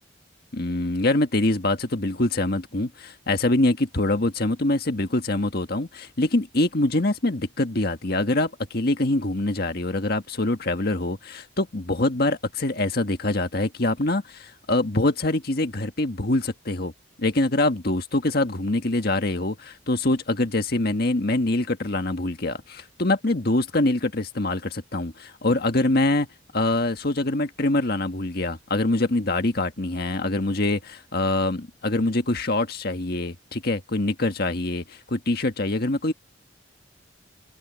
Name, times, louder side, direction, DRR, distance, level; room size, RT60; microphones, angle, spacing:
voice 1, 0.5-16.9 17.2-26.3 26.5-36.1, left 2 dB, 55° left, 1.7 m, -24 dB
head